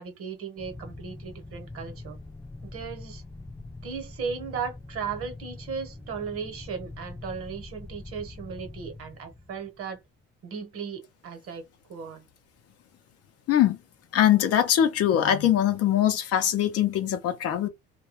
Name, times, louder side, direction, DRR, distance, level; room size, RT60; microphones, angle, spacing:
voice 1, 0.0-2.2 2.7-3.2 3.8-10.0 10.4-11.6 11.9-12.2, right 6 dB, 45° right, 1.0 m, -36 dB
sound 1, 0.6-10.2, left 2 dB, 10° left, 0.6 m, -43 dB
voice 2, 14.1-17.7, left 10 dB, 50° left, 0.6 m, -22 dB
2.2 x 2.2 x 3.0 m
supercardioid pair, 85°, 31 cm